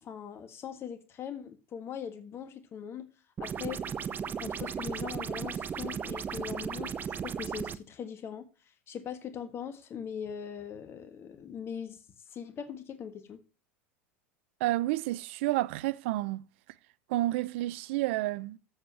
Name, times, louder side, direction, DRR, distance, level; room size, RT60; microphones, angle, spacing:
voice 1, 0.0-3.1 3.4-3.8 4.3-12.0 12.3-13.4, left 8 dB, 40° left, 1.6 m, -41 dB
sound 1, 3.4-7.8, right 7 dB, 30° right, 0.8 m, -36 dB
voice 2, 14.6-16.4 17.1-18.6, right 17 dB, 65° right, 0.5 m, -30 dB
14.5 x 7.1 x 2.9 m
hypercardioid pair, 85°, 7 cm